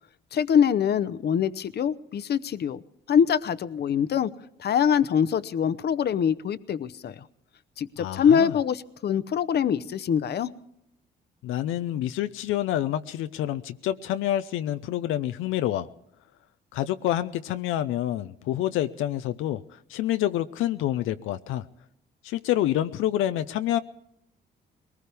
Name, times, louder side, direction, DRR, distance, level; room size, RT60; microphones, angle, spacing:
voice 1, 0.3-2.8 3.1-4.3 4.6-7.2 7.8-10.5, left 8 dB, 55° left, 15 dB, 0.8 m, -24 dB
voice 2, 8.0-8.5 11.4-15.9 16.7-21.6 22.2-23.8, left 12 dB, 90° left, 10 dB, 0.6 m, -27 dB
21.5 x 19.5 x 3.4 m, 0.78 s
cardioid pair, 90°, 20 cm